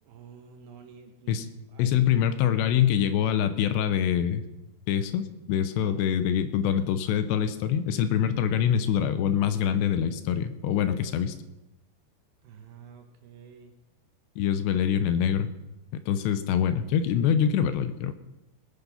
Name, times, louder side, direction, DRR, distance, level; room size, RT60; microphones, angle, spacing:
voice 1, 0.0-2.1 5.8-6.0 12.4-13.7, right 6 dB, 70° right, 5 dB, 2.6 m, -50 dB
voice 2, 1.8-4.4 4.9-11.4 14.4-15.5 16.1-18.1, left 9 dB, 80° left, 11 dB, 2.9 m, -25 dB
19.0 x 9.9 x 5.6 m, 0.98 s
omnidirectional pair, 5.1 m